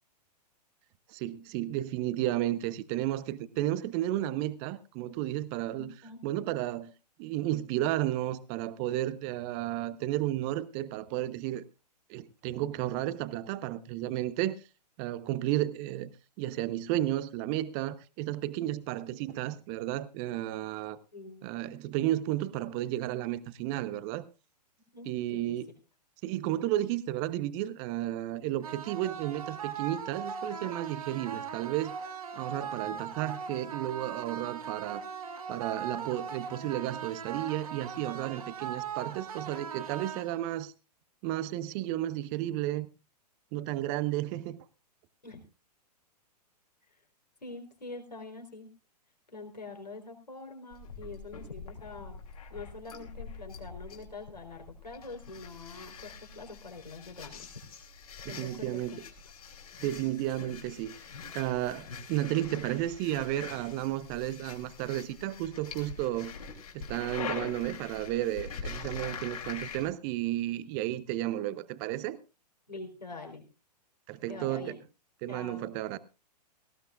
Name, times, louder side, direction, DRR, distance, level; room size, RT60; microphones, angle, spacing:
voice 1, 1.1-5.9 6.2-6.9 7.2-11.6 12.1-14.6 15.0-16.1 16.4-21.0 21.4-24.2 25.1-25.7 26.2-32.0 32.3-35.0 35.5-40.7 41.2-42.9 43.5-44.6 58.2-59.0 59.8-60.9 61.3-66.3 66.7-72.2 74.1-74.8 75.2-76.0, right 14 dB, 25° right, 0.8 m, -33 dB
voice 2, 5.8-6.2 21.1-21.5 24.9-25.6 45.2-45.4 47.4-48.7 49.3-52.2 52.5-57.5 58.3-59.0 59.8-60.2 72.7-73.5 74.3-74.8 75.3-75.7, left 3 dB, 80° left, 4.3 m, -45 dB
sound 1, 28.6-40.6, right 7 dB, 55° right, 2.2 m, -39 dB
sound 2, 50.7-69.9, left 5 dB, 60° left, 3.1 m, -44 dB
18.5 x 16.0 x 2.5 m
figure-of-eight pair, 110°, 21 cm